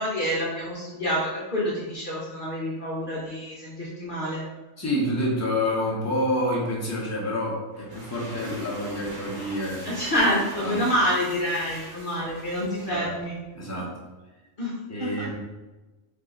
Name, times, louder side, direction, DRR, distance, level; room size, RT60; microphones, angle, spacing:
voice 1, 0.0-4.4 9.8-13.3 13.7-13.8 14.6-14.7 15.0-15.3, equal, 45° left, -6 dB, 1.0 m, -27 dB
voice 2, 4.8-10.0 10.6-10.9 12.9-13.1 13.5-13.9 14.9-15.3, left 1 dB, 15° left, -5 dB, 1.0 m, -28 dB
sound 1, 7.7-13.4, right 1 dB, 45° right, 1.0 m, -43 dB
3.7 x 3.4 x 3.8 m, 1.2 s
omnidirectional pair, 1.2 m